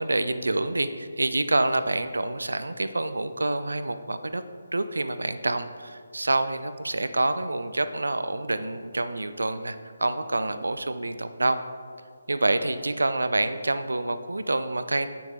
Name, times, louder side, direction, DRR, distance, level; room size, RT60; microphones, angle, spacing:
voice 1, 0.0-4.4 4.7-11.6 12.3-15.1, right 2 dB, 75° right, 11 dB, 0.6 m, -27 dB
18.0 x 6.0 x 3.6 m, 2.2 s
figure-of-eight pair, 150°, 0 cm